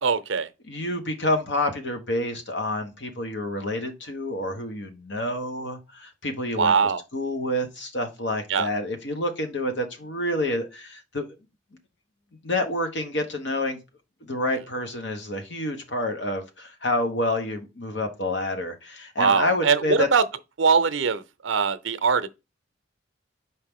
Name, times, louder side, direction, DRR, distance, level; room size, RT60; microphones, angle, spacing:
voice 1, 0.0-0.5 6.6-7.0 8.5-8.7 19.2-20.3 20.6-22.3, right 5 dB, 85° right, 0.6 m, -22 dB
voice 2, 0.7-6.7 7.1-11.3 12.4-13.8 14.2-20.1, left 1 dB, 65° left, 1.1 m, -28 dB
5.7 x 4.7 x 3.6 m
head